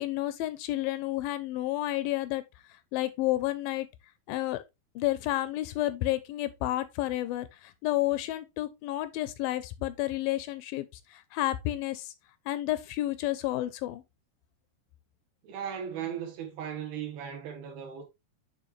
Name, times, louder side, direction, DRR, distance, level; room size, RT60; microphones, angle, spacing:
voice 1, 0.0-2.4 2.9-3.9 4.3-4.6 5.0-12.1 12.5-14.0, left 15 dB, 80° left, 2.1 m, -31 dB
voice 2, 15.4-18.0, right 8 dB, 85° right, 3.3 m, -37 dB
9.0 x 3.7 x 3.0 m
omnidirectional pair, 4.3 m